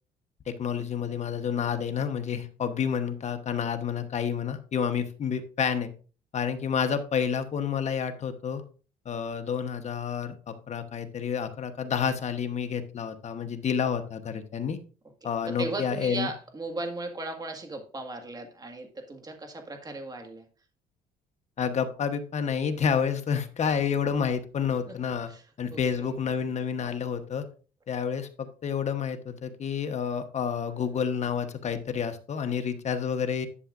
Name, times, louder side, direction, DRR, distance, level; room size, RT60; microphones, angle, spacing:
voice 1, 0.5-5.9 6.3-8.6 9.0-14.8 15.2-16.3 21.6-25.3 25.6-27.4 27.9-33.5, left 7 dB, 40° left, 8 dB, 1.1 m, -29 dB
voice 2, 15.2-20.5 24.9-25.0 25.3-26.2, right 2 dB, 25° right, 5 dB, 1.8 m, -37 dB
11.0 x 7.1 x 2.5 m, 0.37 s
cardioid pair, 110°, 17 cm